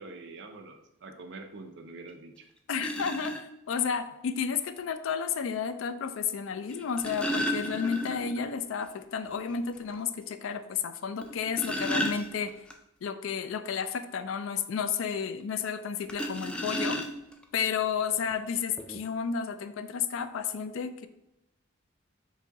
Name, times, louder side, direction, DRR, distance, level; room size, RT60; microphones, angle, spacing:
voice 1, 0.0-2.3, right 3 dB, 60° right, 5 dB, 0.6 m, -45 dB
sound 1, 2.1-2.2 2.8-3.4 4.8-4.9 6.7-8.4 8.8-8.9 9.3-9.4 9.9-10.0 11.2-12.7 16.1-17.4 18.3-18.4 18.8-19.0, equal, 5° left, 0.3 m, -33 dB
voice 2, 2.7-12.5 13.0-17.0 17.5-21.1, left 6 dB, 85° left, 11 dB, 0.4 m, -32 dB
4.7 x 2.7 x 4.0 m, 0.86 s
head